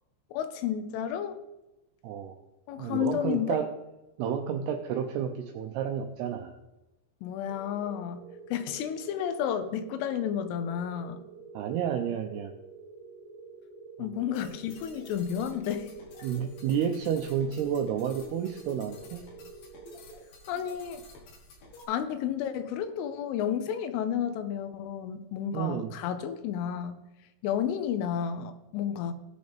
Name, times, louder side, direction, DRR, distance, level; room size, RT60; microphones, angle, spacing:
voice 1, 0.3-1.4 2.7-3.6 7.2-8.2 8.5-11.2 14.0-15.9 20.5-21.0 21.9-27.0 27.4-29.1, left 9 dB, 90° left, 10 dB, 3.4 m, -31 dB
voice 2, 2.0-2.4 2.8-3.7 4.2-6.6 11.5-12.5 14.0-14.1 16.2-19.2 25.5-25.9, right 8 dB, 85° right, 4 dB, 2.3 m, -30 dB
sound 1, 7.5-20.6, right 4 dB, 55° right, 3.3 m, -49 dB
sound 2, 14.3-21.8, left 2 dB, 60° left, 3.1 m, -51 dB
19.0 x 6.5 x 3.5 m, 1.0 s
omnidirectional pair, 5.6 m